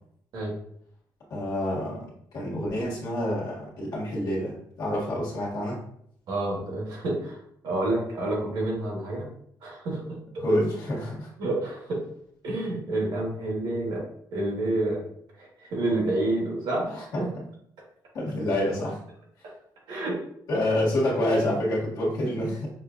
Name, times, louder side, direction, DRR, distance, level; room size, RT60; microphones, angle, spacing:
voice 1, 1.3-2.0 2.3-5.8 10.4-11.3 17.1-17.2 18.1-19.0 20.5-22.7, left 1 dB, 55° left, -4 dB, 1.4 m, -27 dB
voice 2, 6.3-7.4 7.6-9.3 9.6-10.4 11.4-12.0 12.4-14.0 14.3-15.0 15.4-17.3 19.9-20.2, right 2 dB, 75° right, -2 dB, 1.5 m, -29 dB
5.8 x 2.4 x 2.5 m, 0.68 s
cardioid pair, 170°, 7 cm